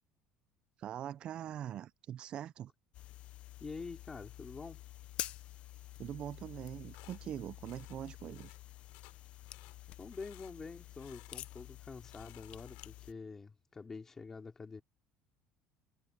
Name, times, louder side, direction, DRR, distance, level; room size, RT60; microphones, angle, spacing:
voice 1, 0.8-2.7 6.0-8.6, right 10 dB, 40° right, 0.4 m, -43 dB
sound 1, 2.9-13.1, left 14 dB, 50° left, 0.6 m, -49 dB
voice 2, 3.6-4.8 10.0-14.8, left 4 dB, 20° left, 3.4 m, -47 dB
sound 2, 6.9-7.2 7.6-8.0 8.3-8.6 8.9-9.2 9.5-9.8 10.1-10.6 11.0-11.7 12.0-13.1, left 26 dB, 80° left, 5.9 m, -59 dB
cardioid pair, 140°, 2 cm